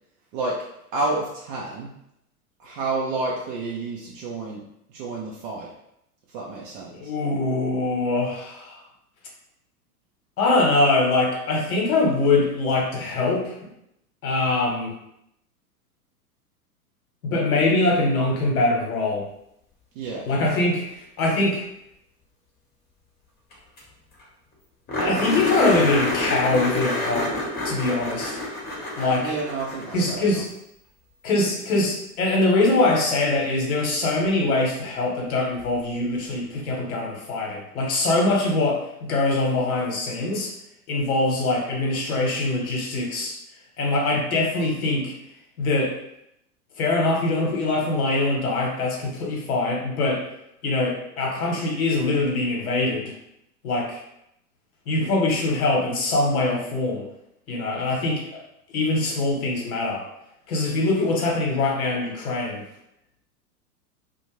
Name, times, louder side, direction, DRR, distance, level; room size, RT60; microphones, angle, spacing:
voice 1, 0.9-1.9 2.6-4.6 4.9-5.7 6.3-7.1 19.9-20.3 29.2-30.4, right 3 dB, 35° right, -3 dB, 0.4 m, -30 dB
voice 2, 6.9-8.8 10.4-13.7 14.2-14.9 17.2-19.3 20.3-21.6 25.0-27.3 27.6-28.4 29.0-29.4 29.9-30.5 31.2-40.5 40.9-43.3 43.8-45.1 45.6-46.0 46.8-50.2 50.6-53.1 53.6-54.0 54.9-57.0 57.5-58.4 58.7-60.1 60.5-62.6, left 2 dB, 65° left, -1 dB, 1.0 m, -23 dB
sound 1, 23.5-23.6 23.8-23.9 24.2-24.3 24.9-30.3 32.7-32.8 35.6-35.7, left 1 dB, 20° left, 0.9 m, -27 dB
2.4 x 2.1 x 3.0 m, 0.79 s
hypercardioid pair, 100°, 46 cm